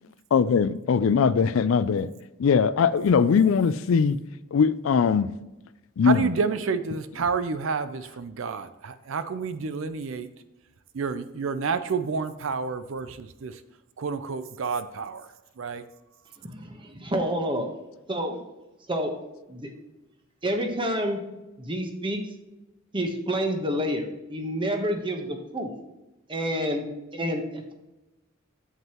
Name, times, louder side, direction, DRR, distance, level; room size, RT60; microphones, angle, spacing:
voice 1, 0.3-2.1 2.4-4.2 4.5-5.3 6.0-6.3, left 6 dB, 70° left, 0.4 m, -21 dB
voice 2, 6.0-10.3 10.9-13.6 14.0-15.3 15.6-15.8, right 5 dB, 65° right, 0.5 m, -29 dB
voice 3, 16.4-17.7 18.1-18.4 18.9-19.1 19.5-19.7 20.4-21.2 21.6-22.2 22.9-25.7 26.3-26.9 27.1-27.7, equal, 25° right, 1.1 m, -28 dB
8.0 x 7.5 x 3.0 m
head